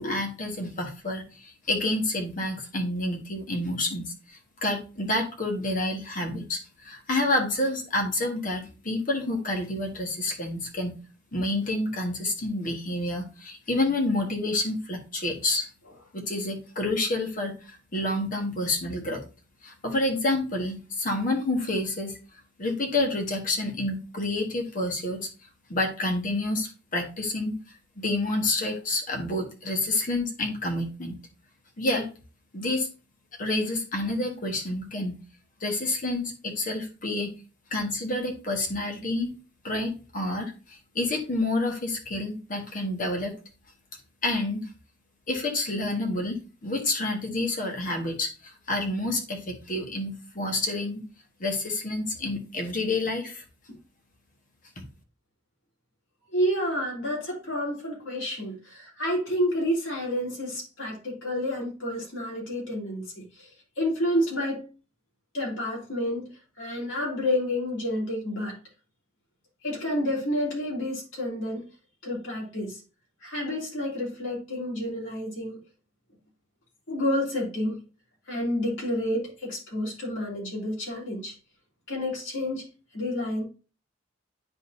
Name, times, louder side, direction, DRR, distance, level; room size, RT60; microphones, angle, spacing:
voice 1, 0.0-10.9 11.3-15.7 16.1-19.2 19.6-22.2 22.6-25.3 25.7-27.5 28.0-31.1 31.8-32.1 32.5-32.9 33.4-35.1 35.6-37.3 37.7-39.4 39.6-43.4 44.2-44.7 45.3-51.0 51.4-53.4 54.8-54.9, left 2 dB, 45° left, 2 dB, 1.4 m, -29 dB
voice 2, 56.3-63.5 63.8-64.6 65.3-66.3 66.6-68.5 69.6-71.6 72.0-72.8 73.2-75.6 76.9-77.8 78.3-81.3 81.9-82.6 82.9-83.4, left 1 dB, 85° left, -4 dB, 3.3 m, -29 dB
10.0 x 3.9 x 2.6 m, 0.33 s
head